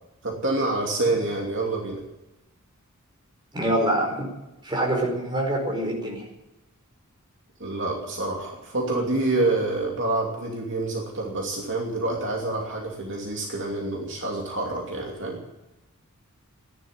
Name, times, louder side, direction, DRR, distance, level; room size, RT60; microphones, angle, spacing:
voice 1, 0.2-2.0 7.6-15.4, right 2 dB, 60° right, 0 dB, 2.7 m, -27 dB
voice 2, 3.5-4.3 4.6-6.2, right 1 dB, 20° right, 0 dB, 4.6 m, -25 dB
15.0 x 11.0 x 8.9 m, 0.94 s
head